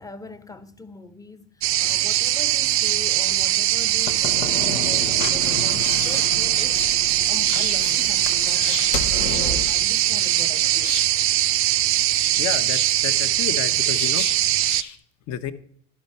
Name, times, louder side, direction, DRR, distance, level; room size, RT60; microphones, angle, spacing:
voice 1, 0.0-1.5 1.8-6.8 7.3-10.9, left 2 dB, 10° left, 0.6 m, -40 dB
sound 1, 1.6-14.8, right 14 dB, 35° right, 0.4 m, -21 dB
Slam / Knock, 4.0-9.8, left 5 dB, 90° left, 0.9 m, -32 dB
sound 2, 6.5-15.0, left 8 dB, 75° left, 1.2 m, -39 dB
voice 2, 12.4-14.3 15.3-15.5, left 10 dB, 45° left, 0.8 m, -30 dB
11.5 x 4.4 x 5.4 m
hypercardioid pair, 90°, 37 cm